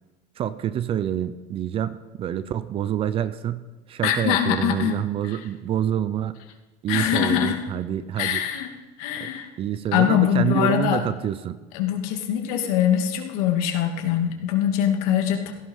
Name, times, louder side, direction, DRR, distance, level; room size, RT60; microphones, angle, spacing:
voice 1, 0.4-3.6 3.9-6.4 6.8-8.4 9.2-9.3 9.6-11.6, right 10 dB, 30° right, 15 dB, 0.6 m, -27 dB
voice 2, 4.0-5.0 5.3-5.4 6.9-7.6 8.2-8.7 9.0-9.5 9.9-11.0 11.7-15.5, left 10 dB, 75° left, 4 dB, 2.5 m, -23 dB
16.5 x 14.5 x 5.7 m, 1.2 s
cardioid pair, 165°, 19 cm